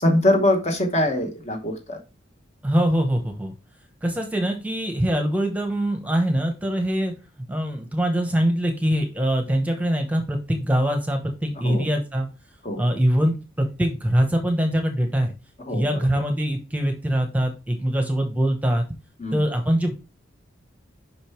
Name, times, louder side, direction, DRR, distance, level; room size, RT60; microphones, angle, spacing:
voice 1, 0.0-2.0 11.6-11.9 12.6-12.8 15.7-16.0 19.2-19.4, left 1 dB, 35° left, 5 dB, 1.1 m, -23 dB
voice 2, 2.6-3.5 4.0-7.1 7.5-12.3 12.8-15.3 15.7-18.8 19.3-19.9, equal, 5° right, 4 dB, 1.0 m, -23 dB
5.5 x 5.2 x 4.5 m, 0.31 s
head